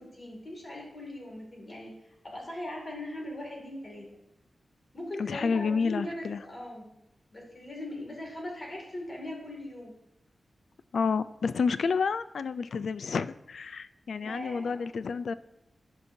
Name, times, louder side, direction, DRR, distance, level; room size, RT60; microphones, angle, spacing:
voice 1, 0.0-2.0 2.2-4.1 4.9-6.9 7.3-9.9 14.2-14.9, left 1 dB, 35° left, -1 dB, 2.3 m, -40 dB
voice 2, 5.2-6.4 10.9-15.3, left 5 dB, 75° left, 14 dB, 0.3 m, -30 dB
14.0 x 5.3 x 2.7 m, 0.86 s
wide cardioid pair, 165°, 0 cm